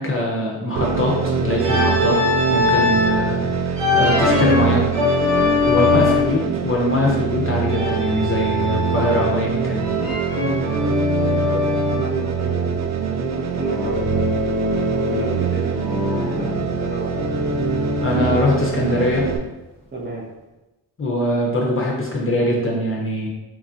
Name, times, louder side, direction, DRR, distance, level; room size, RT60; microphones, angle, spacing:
voice 1, 0.0-2.2 2.5-4.9 5.7-9.9 18.0-19.3 21.0-23.3, left 1 dB, 25° left, -2 dB, 0.7 m, -22 dB
sound 1, 0.8-19.4, right 6 dB, 40° right, 0.4 m, -24 dB
Organ, 1.6-3.2 3.8-6.4 7.7-9.4 9.8-12.1 13.6-15.4 15.8-18.5, left 4 dB, 60° right, 1.1 m, -22 dB
voice 2, 5.5-6.1 8.5-8.8 10.4-14.4 15.0-17.5 19.9-20.2, right 2 dB, 20° right, -3 dB, 0.8 m, -32 dB
3.0 x 2.4 x 2.4 m, 1.0 s
supercardioid pair, 50°, 48 cm